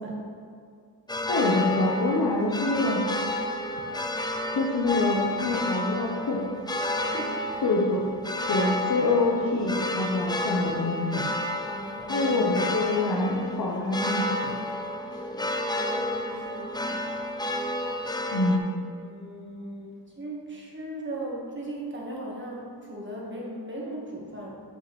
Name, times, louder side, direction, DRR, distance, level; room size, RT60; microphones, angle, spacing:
sound 1, 1.1-18.6, left 1 dB, 10° left, 0.4 m, -30 dB
voice 1, 1.3-3.0 4.5-6.4 7.6-8.1 8.5-11.3 12.1-14.6 18.3-18.6, left 2 dB, 55° left, -3 dB, 0.9 m, -26 dB
voice 2, 7.0-7.6 10.8-10.9 11.6-12.3 15.1-17.1 18.9-24.6, right 1 dB, 25° right, -3 dB, 1.5 m, -38 dB
7.5 x 6.5 x 3.2 m, 2.2 s
wide cardioid pair, 115°, 43 cm